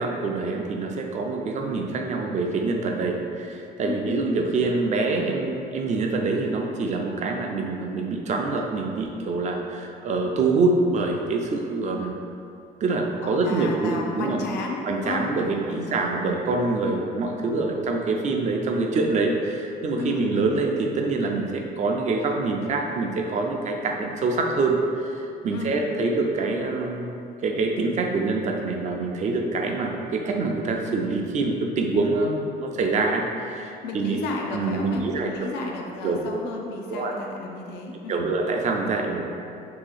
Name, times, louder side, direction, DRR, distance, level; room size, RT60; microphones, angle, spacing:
voice 1, 0.0-12.3 12.8-14.4 14.9-34.2 34.5-35.3 36.0-36.2 36.9-37.1 38.1-39.2, right 3 dB, 45° right, 1 dB, 0.5 m, -25 dB
voice 2, 13.2-16.2 19.9-20.3 25.5-25.8 33.8-38.2, left 3 dB, 85° left, 0 dB, 0.5 m, -33 dB
2.8 x 2.7 x 4.0 m, 2.6 s
cardioid pair, 110°, 17 cm